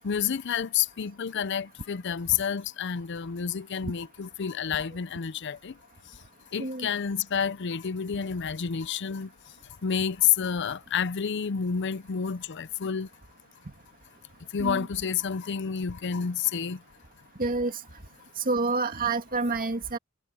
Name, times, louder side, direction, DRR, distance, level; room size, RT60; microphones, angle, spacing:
voice 1, 0.0-5.7 6.5-9.3 9.8-13.1 14.5-16.8, left 7 dB, 60° left, 0.5 m, -29 dB
voice 2, 17.4-17.8 18.4-20.0, right 3 dB, 45° right, 2.1 m, -28 dB
head